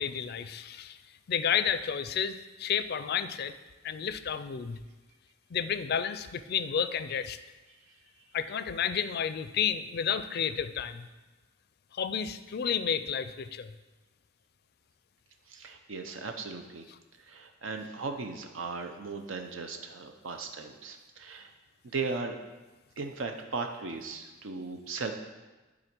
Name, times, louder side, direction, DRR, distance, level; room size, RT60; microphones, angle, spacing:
voice 1, 0.0-3.5 3.8-4.8 5.5-7.4 8.3-11.1 11.9-13.7, left 8 dB, 55° left, 12 dB, 0.4 m, -31 dB
voice 2, 15.5-16.9 17.2-21.5 21.8-22.4 23.0-25.1, right 4 dB, 80° right, 5 dB, 0.7 m, -37 dB
9.8 x 4.0 x 6.0 m, 1.2 s
head